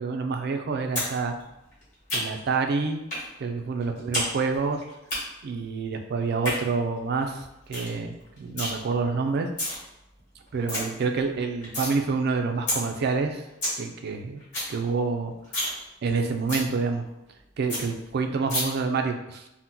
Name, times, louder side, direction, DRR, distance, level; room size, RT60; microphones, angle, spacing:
voice 1, 0.0-1.3 2.1-3.0 3.4-4.8 5.4-9.5 10.5-13.4 13.8-14.4 14.7-15.3 16.0-17.0 17.6-19.4, right 4 dB, 55° right, 5 dB, 0.4 m, -27 dB
sound 1, 1.0-1.1 1.4-2.5 3.1-3.3 3.6-4.3 4.5-5.2 6.2-6.6 7.0-7.1 7.4-7.5 7.7-7.9 8.2-8.7 9.3-9.8 10.2-10.3 10.5-10.8 11.2-11.9 12.3-12.4 12.7-12.8 13.2-13.3 13.4-13.8 14.1-14.2 14.4-14.7 15.0-15.1 15.4-15.8 16.1-16.2 16.5-16.7 17.1-17.2 17.4-17.5 17.7-17.8 18.5-18.6, left 1 dB, 40° left, 1.3 m, -29 dB
2.8 x 2.1 x 3.6 m, 0.92 s
head